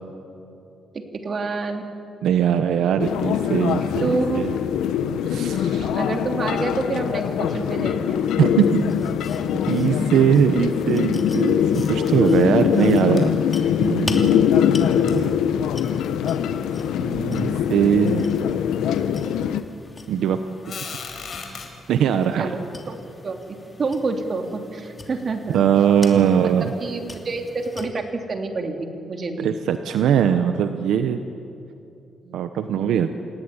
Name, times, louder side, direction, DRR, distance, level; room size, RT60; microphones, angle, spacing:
voice 1, 0.9-1.9 4.0-4.5 5.9-8.2 10.1-10.2 22.0-22.6 22.9-23.0 23.2-25.8 26.8-29.5 32.2-32.4, right 3 dB, 45° right, 4 dB, 3.0 m, -28 dB
voice 2, 2.2-4.5 5.3-5.9 8.4-8.9 9.7-13.3 13.8-14.7 17.0-18.2 20.1-20.4 21.9-22.5 25.5-26.7 29.4-31.2 32.3-33.1, right 8 dB, 85° right, 8 dB, 1.1 m, -21 dB
sound 1, 3.0-19.6, left 8 dB, 90° left, 1.1 m, -22 dB
sound 2, 8.6-27.9, left 2 dB, 25° left, 3.0 m, -41 dB
sound 3, 11.7-12.5 12.8-12.9 13.2-13.3 15.1-15.2 15.9-16.0 16.8-16.9 17.1-17.3 17.9-18.3 19.1-19.2 20.6-21.7, left 6 dB, 60° left, 4.7 m, -37 dB
28.0 x 17.0 x 9.9 m, 2.7 s
cardioid pair, 95°, 0 cm